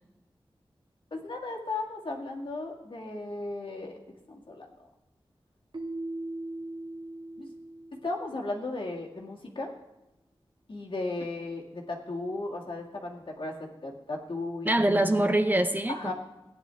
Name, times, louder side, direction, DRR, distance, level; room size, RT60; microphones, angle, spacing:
voice 1, 1.1-3.9 4.3-4.7 7.4-7.5 8.0-9.7 10.7-14.7 15.9-16.1, left 2 dB, 60° left, -1 dB, 2.1 m, -35 dB
Keyboard (musical), 5.7-8.6, right 2 dB, 55° right, 1.4 m, -39 dB
voice 2, 14.6-16.1, right 1 dB, 20° right, 8 dB, 0.7 m, -24 dB
17.0 x 10.0 x 3.4 m, 0.99 s
wide cardioid pair, 90°, 10 cm